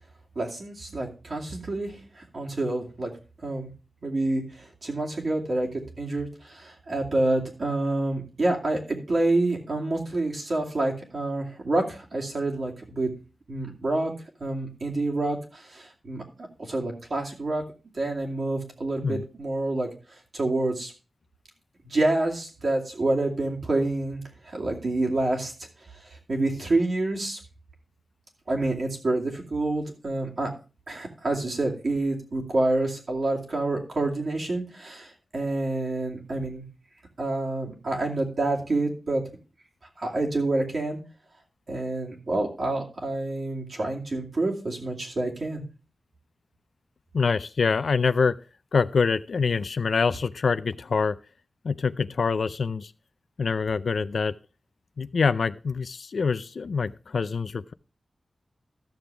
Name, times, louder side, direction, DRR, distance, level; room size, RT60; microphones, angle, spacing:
voice 1, 0.4-3.1 3.4-3.7 4.0-5.7 6.0-13.1 13.5-14.1 14.4-16.2 16.6-17.6 17.9-19.9 20.3-20.9 21.8-25.5 26.3-27.4 28.5-30.5 30.9-36.6 37.2-39.2 40.0-41.0 41.7-45.6, right 2 dB, 55° right, -1 dB, 2.4 m, -27 dB
voice 2, 47.1-48.4 48.7-51.2 51.6-52.9 53.4-54.4 55.0-57.7, left 5 dB, 70° left, 14 dB, 0.4 m, -25 dB
13.0 x 7.0 x 3.4 m, 0.34 s
wide cardioid pair, 110°, 0 cm